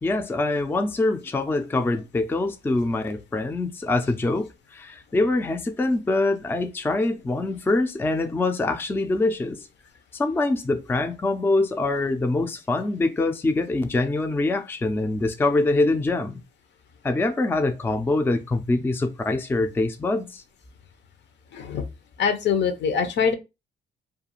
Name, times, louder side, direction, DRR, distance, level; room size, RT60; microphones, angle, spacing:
voice 1, 0.0-9.7 10.1-16.4 17.0-20.4, left 2 dB, 10° left, 0.3 m, -24 dB
voice 2, 21.5-21.8 22.2-23.3, left 6 dB, 65° left, 0.6 m, -23 dB
2.4 x 2.3 x 2.9 m
cardioid pair, 90°, 20 cm